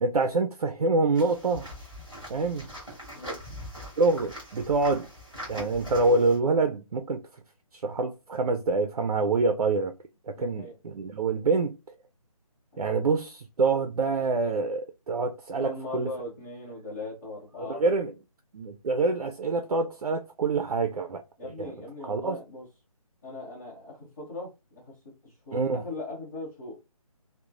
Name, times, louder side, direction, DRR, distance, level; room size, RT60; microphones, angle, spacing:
voice 1, 0.0-1.7 2.3-2.7 4.0-5.1 5.5-7.2 7.7-9.9 10.3-11.7 12.8-16.1 17.6-18.1 18.5-21.2 21.6-21.7 22.1-22.4 25.5-25.8, right 3 dB, 70° right, 0.4 m, -26 dB
sound 1, 1.2-6.4, equal, ahead, 1.5 m, -42 dB
voice 2, 10.3-10.8 15.6-17.8 21.4-22.7 23.2-26.8, left 2 dB, 30° left, 0.9 m, -39 dB
3.0 x 2.1 x 2.4 m
hypercardioid pair, 175°, 19 cm